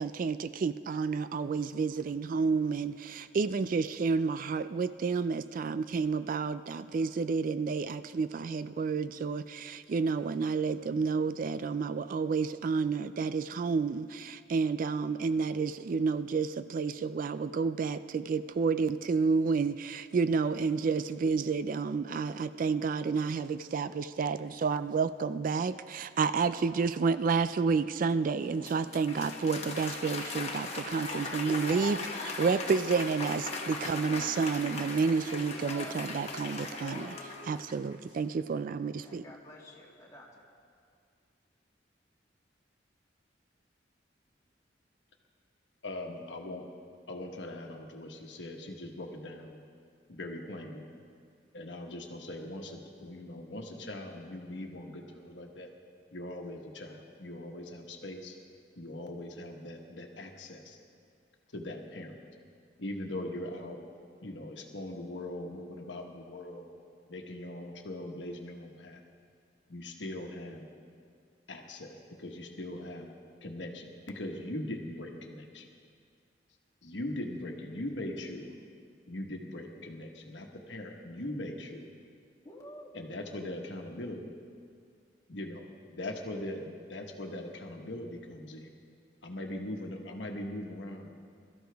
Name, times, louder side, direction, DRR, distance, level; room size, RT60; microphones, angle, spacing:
voice 1, 0.0-39.2, right 5 dB, 50° right, 13 dB, 0.3 m, -30 dB
Applause, 28.4-37.9, left 3 dB, 35° left, 1.3 m, -39 dB
voice 2, 38.9-40.4 82.4-82.9, left 1 dB, 20° left, -4 dB, 2.3 m, -50 dB
voice 3, 45.8-46.6 47.1-49.6 50.1-50.9 51.5-55.7 56.1-58.4 58.8-60.8 61.5-62.2 62.8-63.8 64.2-66.7 67.1-69.0 69.7-70.7 71.5-73.1 73.4-75.7 76.8-78.5 79.1-81.9 82.9-84.3 85.3-85.7 85.9-88.7 89.2-91.1, left 1 dB, 75° left, 2 dB, 1.3 m, -40 dB
22.0 x 13.0 x 3.5 m, 2.2 s
head